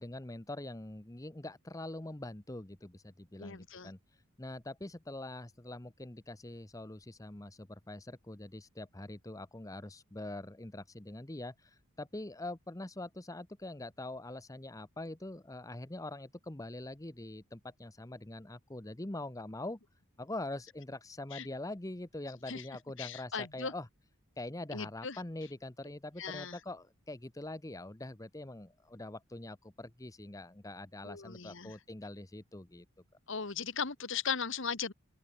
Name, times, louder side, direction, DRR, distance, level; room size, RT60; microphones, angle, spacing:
voice 1, 0.0-4.0 4.4-19.8 20.2-23.9 24.4-32.9, left 2 dB, 15° left, 0.8 m, -44 dB
voice 2, 3.4-3.9 21.3-21.5 22.5-22.6 23.0-23.7 24.7-25.2 26.2-26.5 31.0-31.7 33.3-34.9, left 6 dB, 60° left, 1.4 m, -38 dB
open air
head